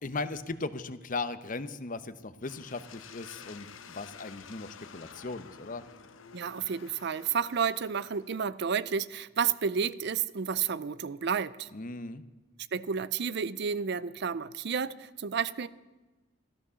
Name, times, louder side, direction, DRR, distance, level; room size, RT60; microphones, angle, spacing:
voice 1, 0.0-5.8 11.7-12.2, left 3 dB, 45° left, 0.8 m, -37 dB
sound 1, 2.4-8.4, left 6 dB, 90° left, 0.9 m, -51 dB
voice 2, 6.3-11.7 12.7-15.7, right 6 dB, 60° right, 0.5 m, -31 dB
14.0 x 13.5 x 6.9 m
head